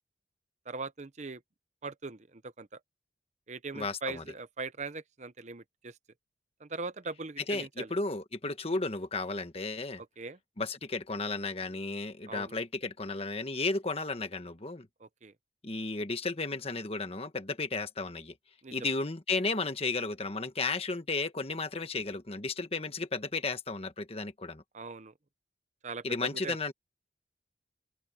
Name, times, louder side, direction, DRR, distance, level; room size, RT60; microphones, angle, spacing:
voice 1, 0.7-1.4 1.8-2.8 3.5-5.9 6.6-7.9 10.2-10.4 12.3-12.5 15.0-15.3 18.6-18.7 24.7-25.1 25.8-26.6, right 3 dB, 40° right, 0.8 m, -40 dB
voice 2, 3.7-4.2 7.5-10.0 10.6-14.9 15.6-18.3 18.7-24.6 26.0-26.7, left 3 dB, 35° left, 1.4 m, -34 dB
open air
head